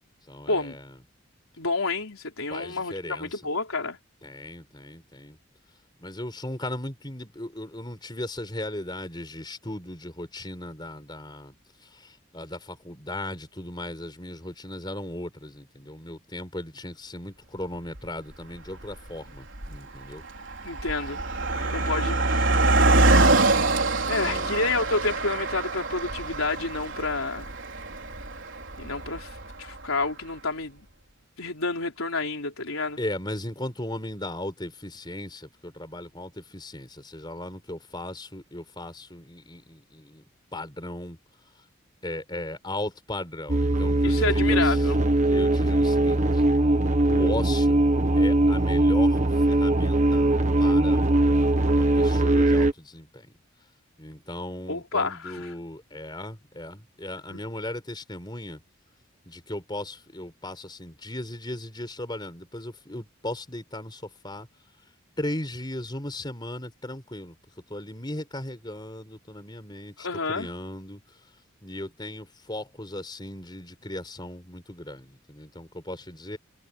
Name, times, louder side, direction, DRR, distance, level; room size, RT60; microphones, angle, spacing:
voice 1, 0.3-0.9 2.5-3.4 4.2-5.4 6.0-11.6 11.8-20.2 21.4-22.5 24.2-24.5 33.0-40.2 40.5-41.2 42.0-44.8 45.2-46.5 47.1-47.8 48.2-50.3 50.6-53.3 54.0-58.6 59.3-64.5 65.2-67.4 67.7-71.0 71.6-76.4, left 1 dB, 20° left, 4.6 m, -37 dB
voice 2, 1.6-4.0 20.6-21.2 21.7-22.2 24.1-27.5 28.8-29.3 29.6-30.9 31.4-33.0 44.0-45.0 54.7-55.5 57.3-57.4 70.0-70.5, left 3 dB, 90° left, 4.2 m, -29 dB
Car passing by, 17.9-18.0 18.8-19.1 19.4-29.8, right 2 dB, 60° right, 4.3 m, -24 dB
sound 1, 43.5-52.7, right 1 dB, 35° right, 1.3 m, -21 dB
head